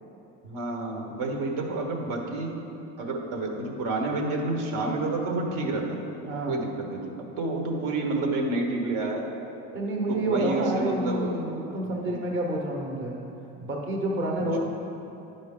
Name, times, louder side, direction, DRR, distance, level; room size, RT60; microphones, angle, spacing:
voice 1, 0.4-2.6 3.0-6.0 6.5-9.3 10.1-11.4 11.8-12.2 14.4-14.6, right 2 dB, 75° right, 2 dB, 1.2 m, -29 dB
voice 2, 6.3-6.6 9.7-13.2 13.6-14.6, right 1 dB, 35° right, 0 dB, 0.9 m, -29 dB
10.5 x 5.4 x 3.7 m, 3.0 s
cardioid pair, 140°, 33 cm